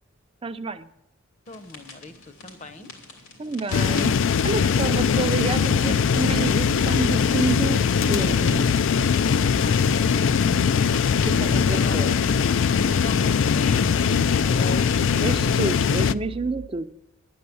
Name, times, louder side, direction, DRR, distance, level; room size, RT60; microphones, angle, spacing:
voice 1, 0.4-0.9 3.4-7.8 8.1-8.9 11.2-12.1 15.2-16.9, right 3 dB, 25° right, 10 dB, 0.5 m, -29 dB
sound 1, 1.5-11.5, left 3 dB, 85° left, 3.0 m, -45 dB
voice 2, 1.5-2.9 9.5-10.6 11.0-12.3 12.7-15.3, left 2 dB, 35° left, 9 dB, 0.8 m, -40 dB
sound 2, 3.7-16.1, left 6 dB, 60° left, 0.4 m, -21 dB
sound 3, 4.6-16.7, right 1 dB, 70° right, 0.6 m, -40 dB
11.0 x 9.5 x 6.9 m, 0.85 s
head